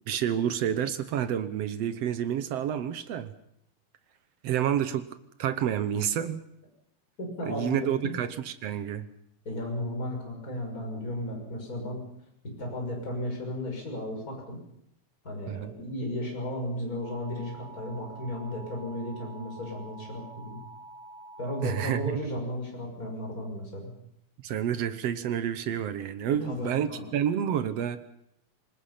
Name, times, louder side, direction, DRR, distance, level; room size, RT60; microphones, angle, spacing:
voice 1, 0.1-3.3 4.4-5.1 5.4-6.4 7.5-9.1 15.5-15.7 21.6-22.2 24.4-28.0, right 9 dB, 65° right, 12 dB, 2.0 m, -29 dB
voice 2, 7.2-7.9 9.4-12.0 12.6-14.6 15.2-20.6 21.4-23.9 26.3-27.1, left 1 dB, 30° left, 1 dB, 6.6 m, -34 dB
sound 1, 17.0-22.1, right 1 dB, 50° right, 5.1 m, -47 dB
26.5 x 20.0 x 5.8 m, 0.75 s
omnidirectional pair, 3.3 m